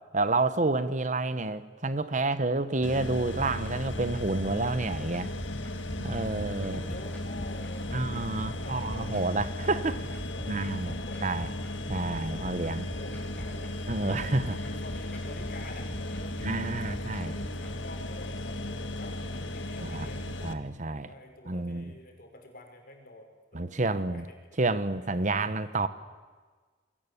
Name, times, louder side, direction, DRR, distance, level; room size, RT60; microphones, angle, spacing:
voice 1, 0.1-5.3 6.0-6.8 7.9-10.0 10.5-10.9 11.2-11.5 11.9-12.9 13.9-14.5 16.4-17.3 19.8-20.1 20.4-21.1 21.5-21.9 23.5-24.2 24.6-25.9, right 2 dB, 40° right, 14 dB, 1.0 m, -29 dB
sound 1, 2.8-20.5, left 1 dB, 85° left, 2.0 m, -36 dB
sound 2, 3.4-17.7, equal, 10° left, 5.9 m, -45 dB
voice 2, 6.0-11.5 11.9-20.3 20.9-24.2 24.5-24.6, left 1 dB, 50° left, 3 dB, 5.8 m, -48 dB
28.0 x 22.5 x 8.5 m, 1.4 s
head